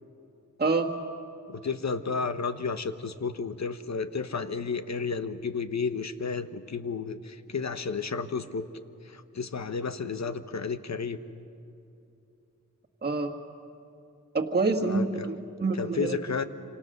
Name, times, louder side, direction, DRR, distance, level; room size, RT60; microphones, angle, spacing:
voice 1, 0.6-0.9 13.0-13.4 14.3-16.2, right 3 dB, 30° right, -1 dB, 1.8 m, -27 dB
voice 2, 1.5-8.7 9.0-11.2 14.9-15.3 15.8-16.4, left 5 dB, 55° left, 10 dB, 1.1 m, -32 dB
27.0 x 26.5 x 6.7 m, 2.7 s
wide cardioid pair, 115°, 32 cm